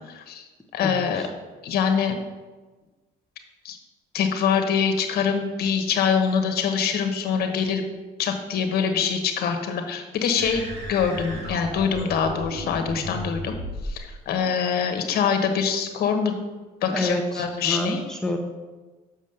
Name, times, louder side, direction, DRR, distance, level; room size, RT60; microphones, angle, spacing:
voice 1, 0.1-0.5 0.7-1.2 1.6-2.2 3.6-3.8 4.1-7.9 8.2-13.5 13.8-16.4 16.8-18.0, left 6 dB, 70° left, 5 dB, 1.2 m, -24 dB
voice 2, 0.8-1.3 16.9-18.4, left 1 dB, 5° left, 2 dB, 0.9 m, -28 dB
Korg Monotron Drone, 10.4-14.0, equal, 70° right, 1.9 m, -34 dB
6.3 x 5.4 x 6.7 m, 1.2 s
cardioid pair, 110°, 17 cm